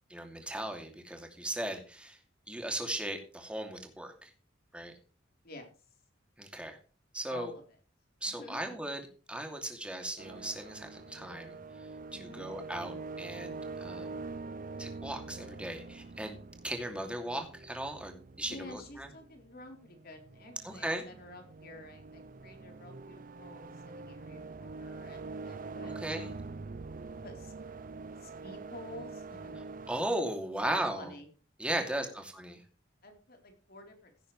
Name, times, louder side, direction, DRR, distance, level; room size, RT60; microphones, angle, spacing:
voice 1, 0.1-2.2 2.5-4.3 4.7-4.9 6.4-6.8 7.1-7.5 8.2-9.0 9.3-11.6 12.1-14.1 14.8-16.4 16.6-19.1 20.6-21.1 25.8-26.3 29.6-31.1 31.6-32.6, right 1 dB, 5° right, 4 dB, 2.7 m, -37 dB
voice 2, 7.3-7.6 8.2-8.9 12.1-12.5 18.4-26.4 27.2-27.5 28.2-29.5 30.6-31.3 31.7-32.1 33.0-34.1, left 2 dB, 50° left, 4 dB, 3.9 m, -50 dB
sound 1, 10.2-30.0, right 3 dB, 45° right, 0.6 m, -45 dB
16.5 x 9.4 x 3.3 m, 0.37 s
head